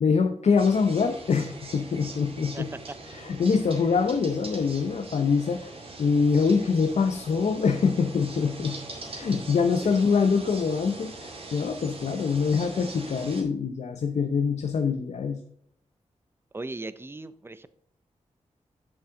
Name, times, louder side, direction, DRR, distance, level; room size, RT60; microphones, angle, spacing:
voice 1, 0.0-2.7 3.1-5.7 6.0-8.8 9.1-15.4, left 5 dB, 65° left, 6 dB, 0.7 m, -24 dB
sound 1, 0.6-13.4, right 2 dB, 50° right, 2.3 m, -42 dB
voice 2, 16.5-17.7, right 2 dB, 20° right, 14 dB, 0.6 m, -38 dB
7.3 x 7.1 x 3.8 m, 0.68 s
wide cardioid pair, 95°, 12 cm